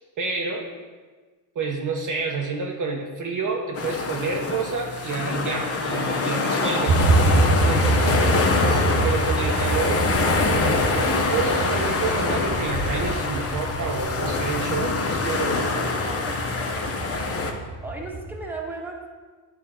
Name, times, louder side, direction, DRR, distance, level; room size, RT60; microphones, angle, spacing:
voice 1, 0.2-0.7 1.6-8.4 8.7-10.1 10.3-15.9, right 4 dB, 40° right, 0 dB, 0.8 m, -29 dB
sound 1, 3.7-17.5, left 3 dB, 30° left, 0.9 m, -25 dB
sound 2, 6.9-18.4, right 2 dB, 60° right, 1.4 m, -26 dB
voice 2, 15.7-16.4 17.8-19.1, right 2 dB, 5° right, -2 dB, 1.3 m, -35 dB
9.0 x 3.6 x 4.2 m, 1.4 s
supercardioid pair, 85°, 46 cm